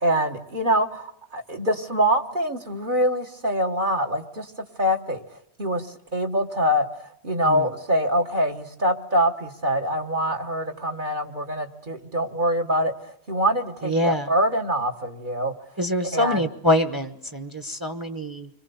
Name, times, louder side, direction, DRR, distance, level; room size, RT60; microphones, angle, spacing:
voice 1, 0.0-4.5 4.8-5.2 5.6-6.9 7.2-12.9 13.3-15.5 16.1-16.4, equal, 45° right, 2 dB, 1.5 m, -24 dB
voice 2, 13.8-14.3 15.8-18.5, left 1 dB, 20° right, 8 dB, 1.1 m, -25 dB
30.0 x 23.5 x 7.0 m, 0.72 s
omnidirectional pair, 1.2 m